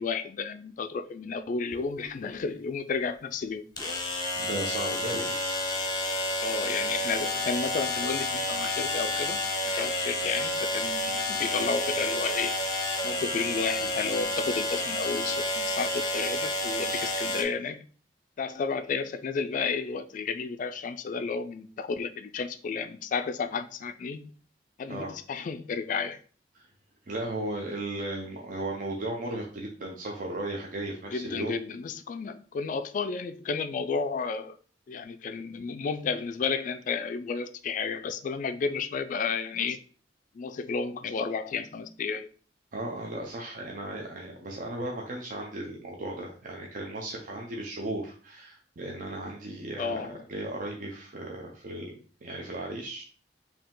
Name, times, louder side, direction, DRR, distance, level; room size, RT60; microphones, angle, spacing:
voice 1, 0.0-3.6 6.4-12.6 13.0-17.9 18.4-24.3 24.8-26.2 31.1-34.6 34.9-39.8 40.3-42.3 49.8-50.2, left 5 dB, 45° left, 0.3 m, -32 dB
untitled toothbush, 1.7-1.8 3.8-17.4, left 1 dB, 25° left, 0.7 m, -30 dB
voice 2, 4.4-5.4 24.9-25.1 26.5-26.7 27.1-31.6 42.7-51.9 52.2-53.0, right 1 dB, 50° right, 0.6 m, -36 dB
4.7 x 2.8 x 3.7 m
head